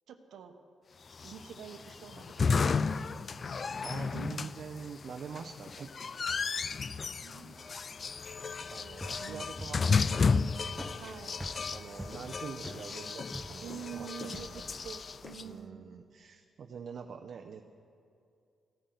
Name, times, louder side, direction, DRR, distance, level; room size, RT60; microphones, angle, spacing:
voice 1, 0.1-0.5 1.2-3.2 4.0-4.4 7.0-8.0 9.2-9.9 11.0-11.4 12.1-13.1 13.6-16.0, right 8 dB, 85° right, 6 dB, 1.0 m, -48 dB
sound 1, 1.1-15.4, left 5 dB, 45° left, 0.3 m, -33 dB
voice 2, 3.8-5.9 8.7-10.5 11.7-14.6 15.4-17.6, right 6 dB, 60° right, 5 dB, 0.6 m, -45 dB
sound 2, 8.9-15.4, equal, 5° right, 0.9 m, -46 dB
15.0 x 14.0 x 3.9 m, 2.4 s
cardioid pair, 100°, 0 cm